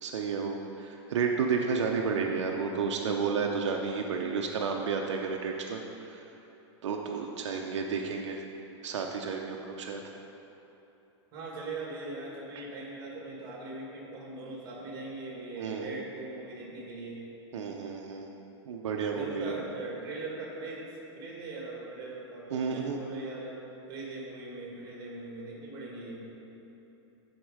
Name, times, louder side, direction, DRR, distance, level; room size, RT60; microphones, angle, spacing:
voice 1, 0.0-5.8 6.1-6.2 6.8-8.4 8.8-10.0 12.6-12.7 15.6-15.9 17.5-18.3 18.7-19.6 22.5-23.0, right 5 dB, 75° right, 1 dB, 0.7 m, -31 dB
voice 2, 11.3-17.2 19.1-20.8 21.1-23.6 23.9-26.2, right 2 dB, 25° right, -3 dB, 1.7 m, -40 dB
9.3 x 4.5 x 5.0 m, 3.0 s
supercardioid pair, 170°, 15 cm